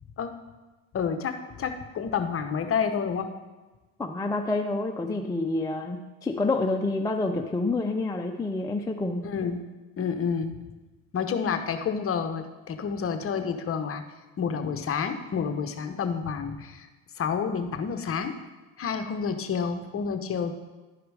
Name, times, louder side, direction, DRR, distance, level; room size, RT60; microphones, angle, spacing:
voice 1, 0.9-3.3 9.2-9.6 10.0-10.5 11.1-14.0 14.4-16.9 17.2-18.3 18.8-20.5, left 6 dB, 35° left, 8 dB, 0.9 m, -29 dB
voice 2, 4.0-9.2, left 2 dB, 10° left, 3 dB, 0.5 m, -28 dB
11.5 x 4.9 x 4.8 m, 1.2 s
supercardioid pair, 95°, 41 cm